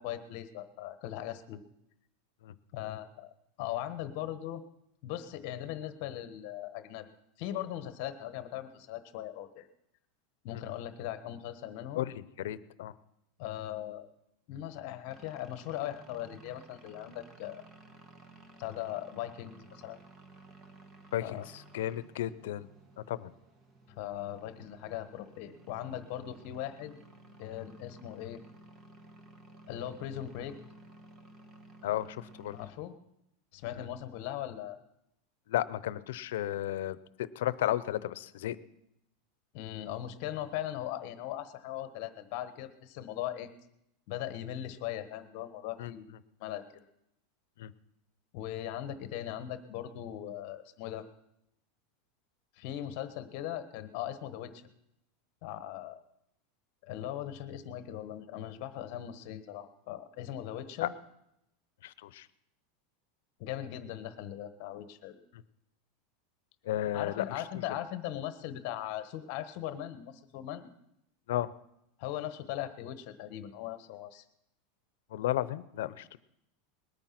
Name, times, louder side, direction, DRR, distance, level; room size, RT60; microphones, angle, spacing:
voice 1, 0.0-1.6 2.7-3.3 3.6-4.6 5.0-7.1 7.4-9.7 10.4-12.1 13.4-14.1 14.5-17.6 18.6-20.0 21.2-21.5 23.9-27.0 27.4-28.4 29.7-30.6 32.5-32.9 33.5-34.8 39.5-43.5 44.1-46.1 46.4-46.9 48.3-51.0 52.6-54.7 55.4-56.0 56.8-60.9 63.4-65.2 66.9-70.7 72.0-74.2, left 12 dB, 50° left, 11 dB, 1.2 m, -39 dB
voice 2, 11.9-12.9 21.1-22.7 23.0-23.3 31.8-32.6 33.8-33.9 35.5-38.6 45.8-45.9 47.6-47.7 60.8-60.9 61.8-62.3 65.3-65.4 66.6-67.6 71.3-71.5 75.1-76.2, left 13 dB, 80° left, 17 dB, 0.7 m, -34 dB
sound 1, 15.1-32.7, right 2 dB, 25° right, 1.3 m, -55 dB
20.5 x 9.0 x 5.9 m, 0.80 s
supercardioid pair, 165°, 0 cm